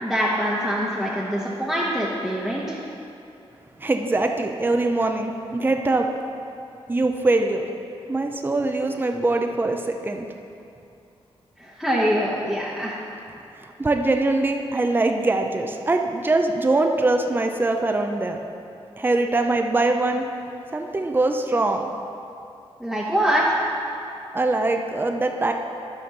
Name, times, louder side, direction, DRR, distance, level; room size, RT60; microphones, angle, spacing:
voice 1, 0.0-2.8 11.6-13.0 22.8-23.6, equal, ahead, -7 dB, 1.1 m, -24 dB
voice 2, 3.8-6.1 6.9-7.7 8.1-10.3 13.6-18.4 19.0-20.2 20.7-21.9 24.3-25.5, right 2 dB, 20° right, 4 dB, 0.6 m, -22 dB
10.5 x 4.3 x 6.6 m, 2.6 s
cardioid pair, 85°, 10 cm